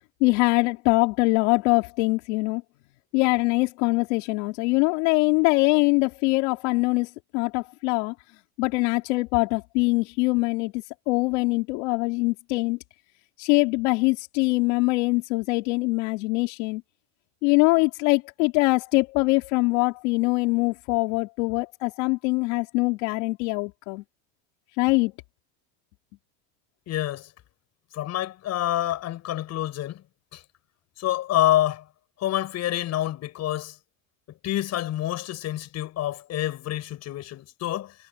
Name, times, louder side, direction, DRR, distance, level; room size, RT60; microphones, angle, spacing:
voice 1, 0.2-2.6 3.1-8.1 8.6-12.8 13.4-16.8 17.4-24.0 24.8-25.1, left 26 dB, 75° left, 3.6 m, -23 dB
voice 2, 26.9-27.3 27.9-30.0 30.3-30.4 31.0-31.8 32.2-33.8 34.4-37.9, left 13 dB, 45° left, 7.1 m, -27 dB
supercardioid pair, 130°, 37 cm